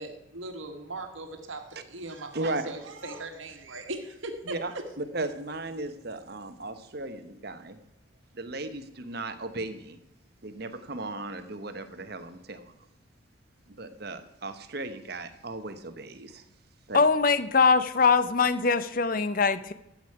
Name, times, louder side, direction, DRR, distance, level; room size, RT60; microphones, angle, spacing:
voice 1, 0.0-4.8, right 2 dB, 75° right, 5 dB, 1.5 m, -39 dB
voice 2, 2.3-2.7 4.5-4.7 5.0-7.8 8.3-10.0 10.4-12.7 13.7-16.4 16.9-17.0, right 2 dB, 50° right, 9 dB, 1.0 m, -36 dB
voice 3, 16.9-19.7, left 5 dB, 45° left, 13 dB, 0.6 m, -22 dB
13.0 x 8.2 x 4.8 m, 0.87 s
head